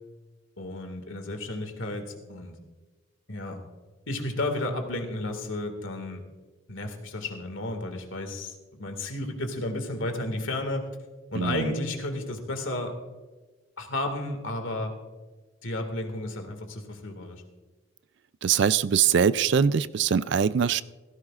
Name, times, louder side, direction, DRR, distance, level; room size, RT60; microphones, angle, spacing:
voice 1, 0.6-2.6 3.3-3.6 4.1-6.2 6.7-10.8 11.3-12.9 13.8-14.9 15.6-17.4, left 1 dB, 65° left, 5 dB, 2.0 m, -32 dB
voice 2, 11.3-11.7 18.4-20.8, right 7 dB, 55° right, 17 dB, 0.3 m, -23 dB
17.0 x 15.5 x 2.5 m, 1.3 s
head